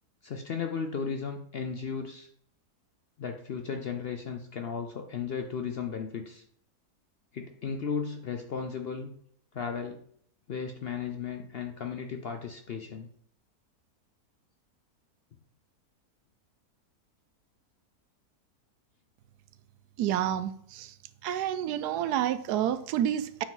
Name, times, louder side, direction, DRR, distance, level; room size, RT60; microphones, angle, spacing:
voice 1, 0.2-2.3 3.2-6.4 7.3-9.1 9.5-10.0 10.5-13.1, left 6 dB, 60° left, 5 dB, 0.6 m, -35 dB
voice 2, 20.0-20.9 21.2-23.4, right 11 dB, 85° right, 13 dB, 1.1 m, -29 dB
8.7 x 4.8 x 3.9 m, 0.65 s
omnidirectional pair, 1.7 m